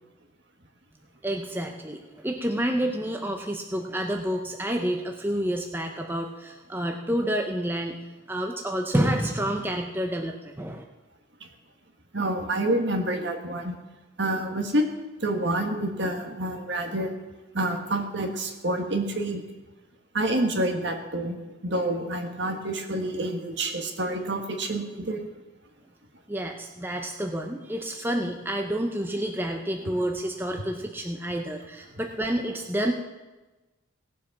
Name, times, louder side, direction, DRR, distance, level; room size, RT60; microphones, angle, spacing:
voice 1, 1.2-10.8 26.3-32.9, right 1 dB, 10° right, 3 dB, 0.7 m, -29 dB
voice 2, 12.1-13.7 14.2-14.8 15.2-17.1 17.5-19.4 20.1-21.3 21.6-25.2, right 1 dB, 55° right, 4 dB, 1.6 m, -28 dB
17.0 x 7.5 x 5.9 m, 1.1 s
head